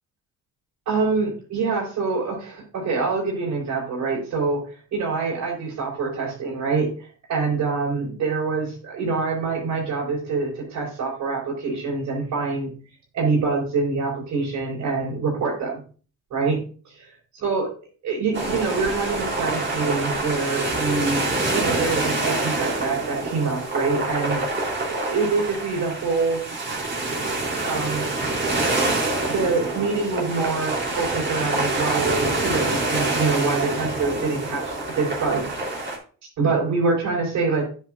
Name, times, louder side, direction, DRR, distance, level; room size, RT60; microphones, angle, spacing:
voice 1, 0.8-12.7 13.1-15.8 16.3-17.1 17.4-17.7 18.0-21.2 21.5-24.4 24.9-26.4 27.6-28.1 29.3-35.5 36.4-37.6, right 4 dB, 75° right, -7 dB, 5.0 m, -25 dB
sound 1, 18.3-36.0, right 2 dB, 35° right, 3.7 m, -26 dB
9.8 x 8.4 x 2.6 m, 0.40 s
cardioid pair, 90°, 30 cm